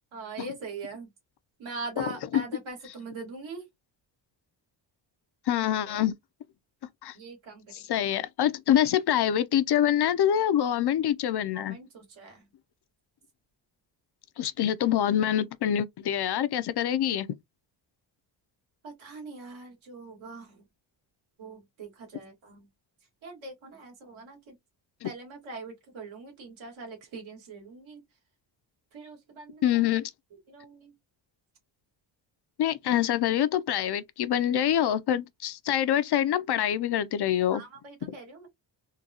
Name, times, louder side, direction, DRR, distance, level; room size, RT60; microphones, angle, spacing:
voice 1, 0.1-1.1 1.6-3.6 5.9-6.1 7.1-8.0 11.5-12.5 18.8-20.7 21.4-22.7 23.2-24.6 25.0-28.0 28.9-29.6 30.5-30.9 37.5-38.5, right 3 dB, 80° right, 1.9 m, -42 dB
voice 2, 5.5-6.1 7.0-7.1 7.9-11.8 14.4-17.3 25.0-25.1 29.6-30.1 32.6-37.6, left 10 dB, 55° left, 0.5 m, -25 dB
3.8 x 2.3 x 2.8 m
cardioid pair, 100°, 46 cm